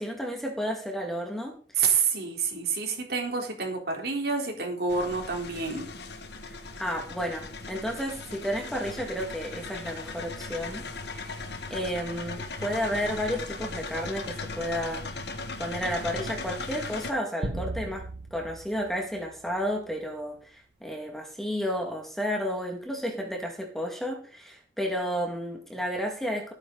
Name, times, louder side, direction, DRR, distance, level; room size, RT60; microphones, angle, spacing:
voice 1, 0.0-2.0 6.4-15.0 15.6-18.1 18.3-26.5, equal, ahead, 1 dB, 2.1 m, -32 dB
voice 2, 1.8-5.9, right 5 dB, 55° right, 1 dB, 4.0 m, -28 dB
sound 1, 4.9-17.1, left 3 dB, 65° left, 1.6 m, -38 dB
sound 2, 17.4-20.0, right 2 dB, 75° right, 1.4 m, -38 dB
17.5 x 9.0 x 4.1 m, 0.42 s
head